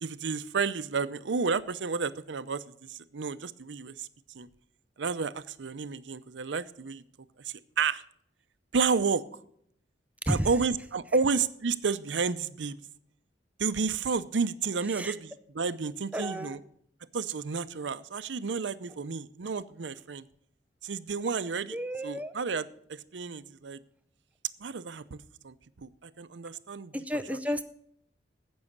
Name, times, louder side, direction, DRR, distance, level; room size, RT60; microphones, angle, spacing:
voice 1, 0.0-2.6 2.9-4.1 4.3-4.5 5.0-7.0 7.4-8.0 8.7-9.2 10.3-12.8 13.6-16.6 17.1-20.2 20.8-21.8 22.0-23.8 24.6-26.9, right 5 dB, 85° right, 14 dB, 0.6 m, -31 dB
voice 2, 16.1-16.6 21.7-22.3 26.9-27.6, equal, 10° right, 11 dB, 0.5 m, -31 dB
16.0 x 6.3 x 6.6 m, 0.69 s
head